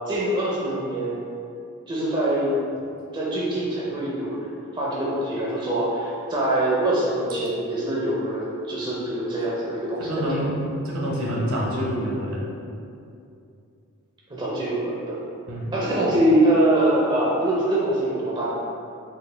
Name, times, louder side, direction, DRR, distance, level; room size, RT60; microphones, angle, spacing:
voice 1, 0.1-1.2 1.9-2.6 3.1-10.4 14.3-15.2 15.7-18.6, right 1 dB, 20° right, -6 dB, 0.5 m, -24 dB
voice 2, 10.0-12.4 15.5-15.7, equal, 65° right, -4 dB, 0.8 m, -27 dB
4.1 x 2.3 x 3.3 m, 2.6 s
head